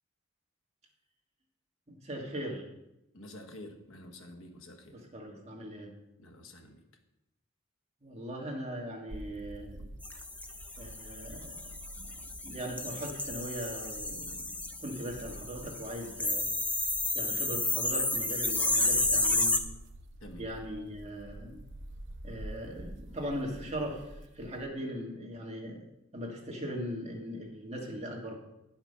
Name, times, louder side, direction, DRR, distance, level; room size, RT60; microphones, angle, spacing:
voice 1, 1.9-2.6 4.9-5.9 8.0-9.9 10.8-11.6 12.4-14.4 14.8-16.4 16.7-16.8 17.1-19.6 20.4-21.6 22.2-25.8 26.1-28.3, equal, 30° right, -1 dB, 1.8 m, -39 dB
voice 2, 3.1-5.0 6.2-6.8 20.2-20.5, left 1 dB, 75° left, 4 dB, 1.2 m, -48 dB
sound 1, 9.1-24.7, right 1 dB, 60° right, 0.7 m, -49 dB
sound 2, 10.0-19.6, left 2 dB, 5° left, 0.5 m, -32 dB
9.4 x 5.9 x 5.6 m, 0.92 s
head